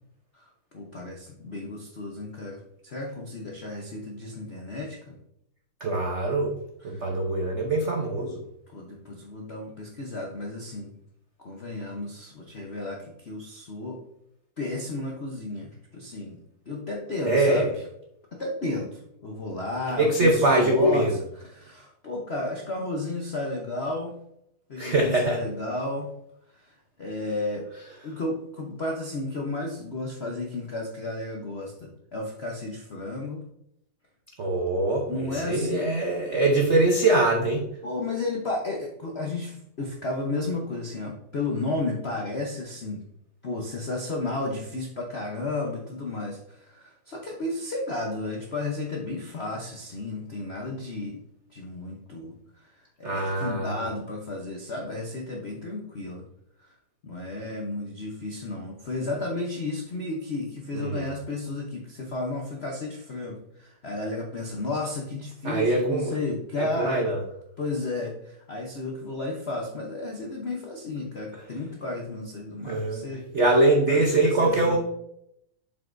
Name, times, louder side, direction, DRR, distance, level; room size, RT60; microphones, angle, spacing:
voice 1, 0.3-5.1 6.9-7.1 8.7-11.0 11.4-14.0 14.6-16.4 16.7-17.7 18.3-21.1 21.4-24.2 24.7-26.2 26.5-27.6 28.0-33.4 35.1-35.9 37.8-43.0 43.4-51.2 51.5-56.2 56.6-56.7 57.0-67.1 67.6-73.3 73.9-74.8, left 2 dB, 65° left, -1 dB, 0.6 m, -33 dB
voice 2, 5.8-6.5 6.8-8.4 17.2-17.7 20.0-21.1 24.8-25.4 34.4-37.7 53.0-53.7 60.7-61.0 65.4-66.1 66.6-67.2 71.3-71.4 72.7-73.0 73.3-74.8, right 2 dB, 75° right, 1 dB, 0.6 m, -23 dB
7.5 x 5.8 x 2.6 m, 0.76 s
omnidirectional pair, 2.4 m